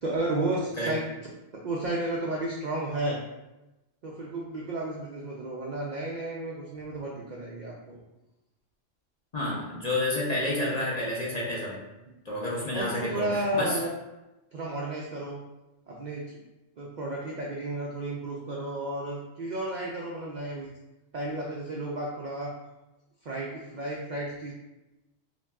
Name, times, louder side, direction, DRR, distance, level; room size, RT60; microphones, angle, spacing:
voice 1, 0.0-1.1 1.5-3.2 4.0-8.0 12.3-12.4 12.7-13.9 14.5-15.4 15.9-16.4 16.8-20.7 21.1-22.5 23.2-24.5, right 2 dB, 70° right, -3 dB, 0.4 m, -32 dB
voice 2, 9.3-11.8 12.2-13.8, left 1 dB, 40° left, -5 dB, 0.7 m, -29 dB
5.8 x 2.3 x 2.3 m, 0.99 s
omnidirectional pair, 1.4 m